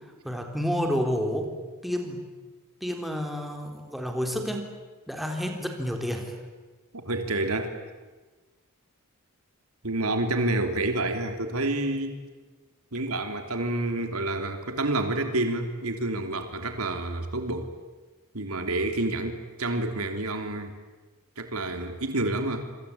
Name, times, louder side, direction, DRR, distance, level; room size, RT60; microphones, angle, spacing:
voice 1, 0.2-1.5 1.8-2.2 2.8-4.7 5.1-6.4, equal, ahead, 3 dB, 3.8 m, -29 dB
voice 2, 6.9-7.7 9.8-12.2 12.9-17.7 18.3-20.7 21.4-22.7, right 2 dB, 80° right, 6 dB, 3.2 m, -28 dB
26.5 x 25.5 x 8.6 m, 1.3 s
head